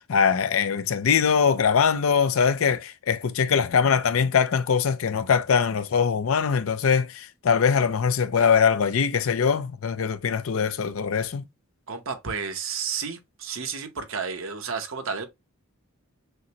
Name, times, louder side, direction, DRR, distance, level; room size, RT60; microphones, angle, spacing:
voice 1, 0.1-11.5, left 6 dB, 65° left, 0.5 m, -22 dB
voice 2, 11.9-15.3, right 5 dB, 60° right, 0.8 m, -31 dB
6.4 x 2.1 x 2.8 m
head